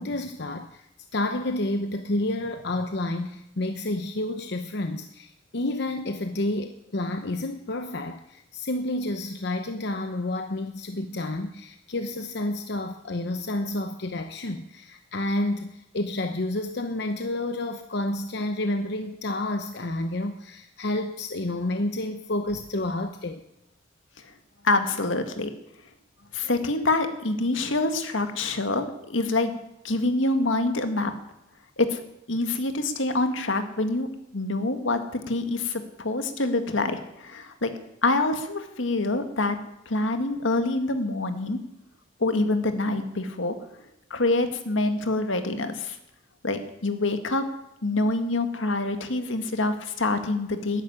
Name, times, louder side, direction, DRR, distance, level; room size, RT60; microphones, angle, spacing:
voice 1, 0.0-23.4, left 1 dB, 60° left, 7 dB, 0.9 m, -30 dB
voice 2, 24.6-25.5 26.3-29.5 29.8-31.1 31.8-32.0 32.3-34.1 34.3-37.7 38.0-39.6 39.9-41.6 42.2-43.6 44.1-46.0 46.4-47.4 47.8-50.8, left 2 dB, 80° left, 7 dB, 1.8 m, -26 dB
13.0 x 10.5 x 9.8 m, 0.86 s
head